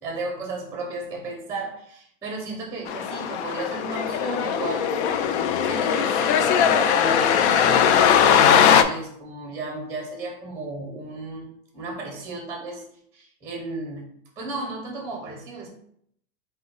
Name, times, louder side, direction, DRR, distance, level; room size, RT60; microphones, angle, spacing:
voice 1, 0.0-4.9 5.6-11.5 11.7-12.8 13.1-14.1 14.4-15.7, right 3 dB, 10° right, 0 dB, 0.7 m, -34 dB
sound 1, 2.9-8.8, left 8 dB, 70° left, 0.5 m, -20 dB
4.5 x 2.2 x 3.8 m, 0.68 s
supercardioid pair, 150°, 35 cm